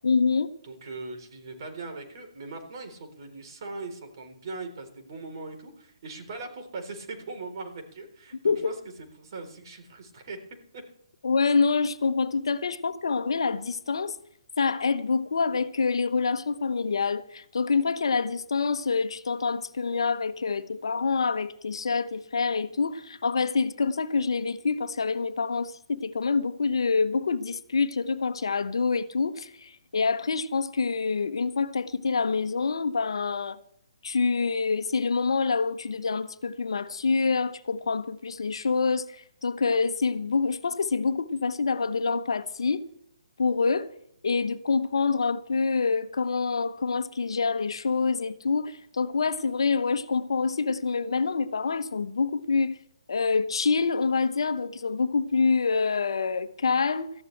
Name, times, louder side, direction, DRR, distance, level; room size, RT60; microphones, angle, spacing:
voice 1, 0.0-0.5 8.4-8.7 11.2-14.2 14.6-33.6 34.0-42.9 43.4-43.9 44.2-52.8 53.1-57.1, left 4 dB, 65° left, 1.0 m, -26 dB
voice 2, 0.6-10.4 10.7-10.8, right 3 dB, 45° right, 3.9 m, -40 dB
19.0 x 14.5 x 3.4 m
figure-of-eight pair, 135°, 3 cm